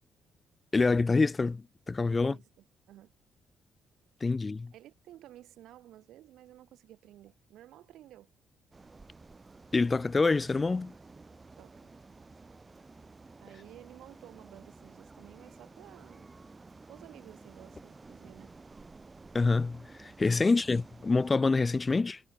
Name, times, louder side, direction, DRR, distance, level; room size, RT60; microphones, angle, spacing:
voice 1, 0.7-2.4 4.2-4.7 9.7-10.9 19.3-22.2, left 3 dB, 25° left, 0.4 m, -26 dB
voice 2, 2.0-3.1 4.7-8.3 11.6-11.9 13.4-16.3 16.9-18.5 20.4-20.5, right 13 dB, 80° right, 3.6 m, -53 dB
sound 1, 8.7-21.3, right 3 dB, 25° right, 2.4 m, -52 dB
cardioid pair, 90°, 0 cm